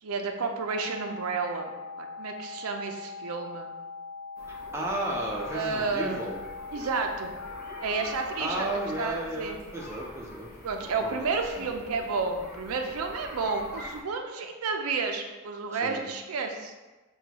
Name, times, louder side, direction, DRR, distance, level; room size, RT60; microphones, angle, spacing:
voice 1, 0.0-3.8 5.5-6.2 6.7-7.3 7.8-8.7 9.0-9.6 10.6-16.7, right 4 dB, 90° right, 4 dB, 0.4 m, -31 dB
sound 1, 0.6-9.0, left 4 dB, 75° left, 0.4 m, -41 dB
sound 2, 4.4-14.0, left 1 dB, 45° left, 0.8 m, -45 dB
voice 2, 4.7-6.5 8.4-10.5 11.0-11.7 15.7-16.1, right 1 dB, 10° right, -3 dB, 0.5 m, -34 dB
5.9 x 2.3 x 2.8 m, 1.2 s
head